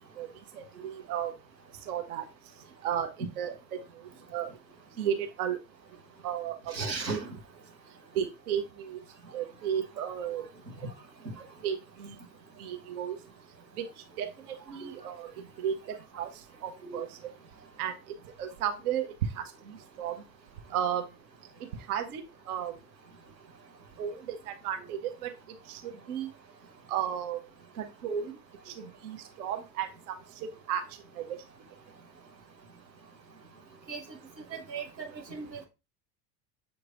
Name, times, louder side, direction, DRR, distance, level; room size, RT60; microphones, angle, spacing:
voice 1, 0.5-1.3 1.8-2.3 2.8-3.1 3.4-4.5 5.0-5.6 6.2-6.7 8.1-9.0 9.3-10.4 11.6-12.2 12.6-13.2 13.7-17.3 17.8-20.2 20.7-21.1 21.9-22.7 24.0-25.3 25.6-26.3 26.9-27.4 27.7-28.3 28.6-31.4, right 9 dB, 60° right, 6 dB, 0.8 m, -34 dB
voice 2, 6.7-7.3 14.8-14.9 16.8-17.0 33.9-34.0 34.5-35.7, right 4 dB, 90° right, 1 dB, 1.0 m, -36 dB
6.9 x 3.1 x 2.4 m, 0.27 s
figure-of-eight pair, 70°, 49 cm